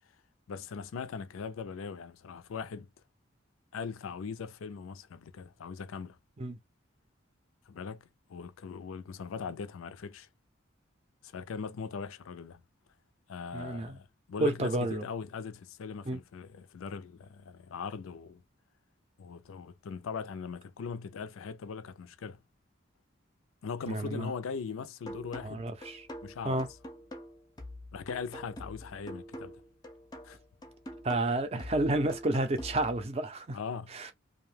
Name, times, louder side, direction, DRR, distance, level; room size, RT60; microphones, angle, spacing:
voice 1, 0.5-2.9 3.7-6.2 7.7-10.3 11.2-12.6 13.3-18.4 19.2-22.4 23.6-25.7 26.2-26.7 27.9-29.6 30.2-30.4 33.5-33.9, left 5 dB, 90° left, 0.4 m, -40 dB
voice 2, 13.5-14.0 14.4-15.0 16.1-16.2 23.9-24.3 25.4-26.0 26.4-26.7 31.0-33.6 33.9-34.1, right 2 dB, 30° right, 0.4 m, -30 dB
sound 1, 25.1-33.1, equal, 20° left, 0.5 m, -45 dB
2.7 x 2.1 x 3.2 m
head